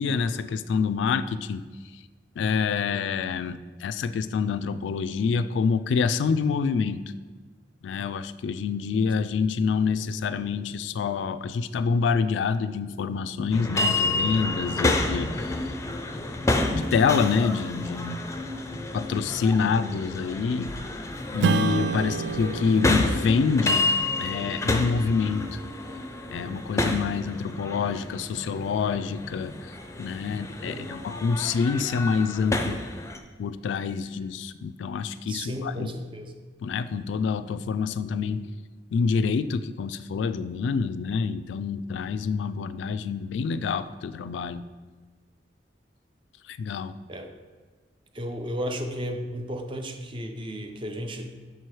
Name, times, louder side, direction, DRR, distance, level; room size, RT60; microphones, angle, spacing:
voice 1, 0.0-1.6 2.4-7.0 7.8-15.6 16.7-18.2 18.9-20.7 21.3-23.8 24.2-25.6 26.3-29.7 30.0-32.8 33.4-35.9 36.6-38.5 38.9-44.6 46.5-46.9, left 5 dB, 80° left, 13 dB, 0.3 m, -27 dB
sound 1, 13.5-33.2, left 2 dB, 15° left, 0.5 m, -30 dB
Strum, 21.4-26.3, right 6 dB, 65° right, 0.3 m, -31 dB
voice 2, 35.3-36.3 47.1-47.3 48.1-51.4, equal, 30° right, 6 dB, 0.6 m, -34 dB
6.8 x 4.5 x 4.7 m, 1.4 s
head